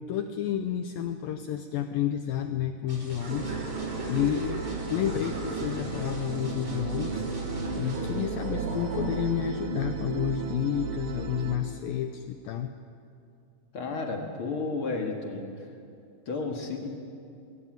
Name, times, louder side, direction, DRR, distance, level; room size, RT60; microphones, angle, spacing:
voice 1, 0.0-7.2 7.7-12.7, left 10 dB, 90° left, 8 dB, 2.0 m, -31 dB
sound 1, 2.9-8.2, left 1 dB, 20° right, 4.6 m, -45 dB
sound 2, 3.1-9.4, right 1 dB, 50° right, 5.4 m, -40 dB
sound 3, 3.3-11.6, right 4 dB, 70° right, 3.4 m, -34 dB
voice 2, 13.7-15.7 16.2-16.9, left 3 dB, 50° left, 1 dB, 1.7 m, -32 dB
22.0 x 16.5 x 9.1 m, 2.5 s
omnidirectional pair, 4.9 m